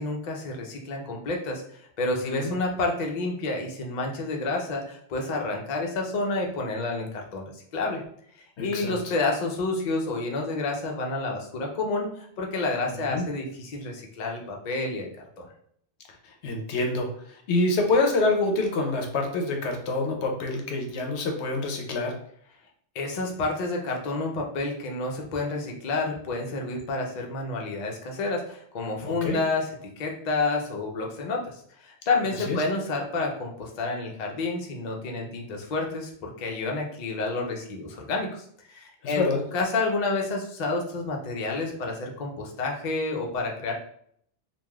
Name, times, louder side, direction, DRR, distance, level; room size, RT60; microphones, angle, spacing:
voice 1, 0.0-7.4 7.7-8.0 8.6-15.1 15.4-15.5 22.9-29.6 30.0-39.2 39.5-43.7, left 3 dB, 55° left, 0 dB, 0.5 m, -29 dB
voice 2, 2.2-2.5 8.6-9.1 13.1-13.2 16.2-22.1 29.0-29.4 32.2-32.6 39.0-39.4, left 2 dB, 75° left, 2 dB, 0.9 m, -27 dB
3.3 x 2.3 x 2.2 m, 0.65 s
omnidirectional pair, 1.2 m